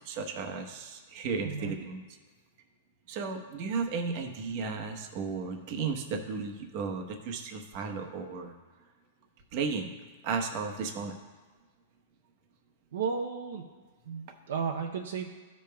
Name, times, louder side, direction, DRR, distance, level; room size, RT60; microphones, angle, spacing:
voice 1, 0.0-2.0 3.1-8.5 9.5-9.9 10.2-11.1, right 5 dB, 45° right, 4 dB, 1.0 m, -34 dB
voice 2, 1.4-1.7 12.9-13.6 14.0-15.3, right 6 dB, 75° right, 2 dB, 0.6 m, -33 dB
15.0 x 5.3 x 2.2 m, 1.4 s
hypercardioid pair, 145°, 0 cm